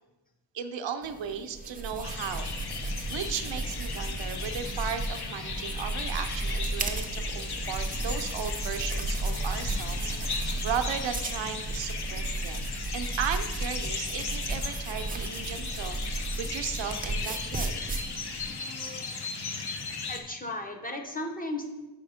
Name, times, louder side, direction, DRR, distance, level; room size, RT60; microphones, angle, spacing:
voice 1, 0.5-2.5 2.8-12.7 12.9-17.8, right 7 dB, 90° right, 8 dB, 0.6 m, -36 dB
sound 1, 1.0-18.5, right 2 dB, 20° right, 0.4 m, -34 dB
sound 2, 2.0-20.2, left 4 dB, 60° left, 0.8 m, -37 dB
voice 2, 20.1-21.7, left 1 dB, 20° left, 3 dB, 0.6 m, -35 dB
5.6 x 5.2 x 4.9 m, 1.1 s
wide cardioid pair, 180°, 43 cm